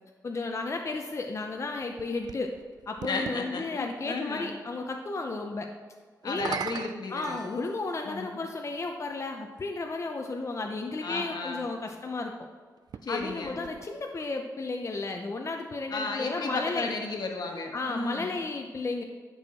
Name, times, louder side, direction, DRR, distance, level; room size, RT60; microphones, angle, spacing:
voice 1, 0.2-2.5 2.9-5.7 6.2-6.5 7.1-12.3 13.1-16.9 17.7-19.0, left 3 dB, 45° left, 3 dB, 0.7 m, -33 dB
sound 1, 1.6-3.4 6.2-8.0 9.0-9.1 12.8-14.3, right 7 dB, 75° right, 0.3 m, -40 dB
voice 2, 3.1-4.6 6.2-7.4 8.0-8.4 11.0-11.6 13.0-13.6 15.9-18.4, left 3 dB, 80° left, 2 dB, 1.4 m, -34 dB
sound 2, 7.2-8.7, equal, 60° right, 1.8 m, -46 dB
11.0 x 6.4 x 4.3 m, 1.5 s
wide cardioid pair, 95°, 7 cm